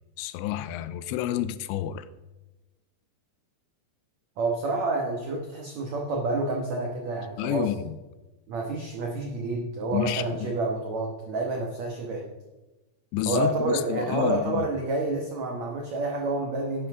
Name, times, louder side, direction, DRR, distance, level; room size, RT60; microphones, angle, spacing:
voice 1, 0.2-2.1 7.4-8.0 9.9-10.5 13.1-14.7, left 12 dB, 90° left, 2.8 m, -29 dB
voice 2, 4.4-7.7 8.5-12.2 13.2-16.9, right 2 dB, 80° right, 1.5 m, -29 dB
11.5 x 11.0 x 3.6 m
omnidirectional pair, 5.1 m